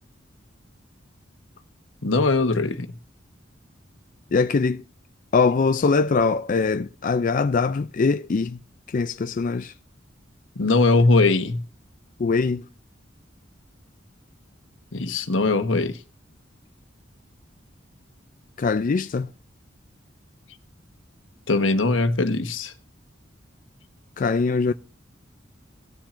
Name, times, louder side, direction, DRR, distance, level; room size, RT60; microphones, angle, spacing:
voice 1, 2.0-2.9 10.6-11.6 14.9-16.0 21.5-22.7, left 3 dB, 90° left, 1.2 m, -20 dB
voice 2, 4.3-4.8 5.3-8.6 8.9-9.7 12.2-12.6 18.6-19.3 24.2-24.7, left 4 dB, 45° left, 0.4 m, -22 dB
18.0 x 7.3 x 2.6 m
head